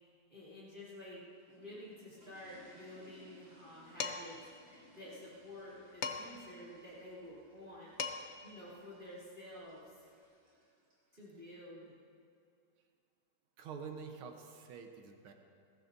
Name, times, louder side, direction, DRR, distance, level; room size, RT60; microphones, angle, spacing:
voice 1, 0.3-4.4 4.9-7.9 8.4-9.9 11.1-11.9, left 1 dB, 25° right, -8 dB, 3.0 m, -50 dB
sound 1, 1.3-11.4, equal, 65° right, 4.8 m, -64 dB
Dishes pots and pans, 4.0-4.4 6.0-6.5 7.6-7.7 8.0-8.4, left 5 dB, 60° left, 0.7 m, -39 dB
voice 2, 13.6-15.3, right 6 dB, 90° right, 4 dB, 1.9 m, -47 dB
21.5 x 15.0 x 2.7 m, 2.4 s
omnidirectional pair, 2.3 m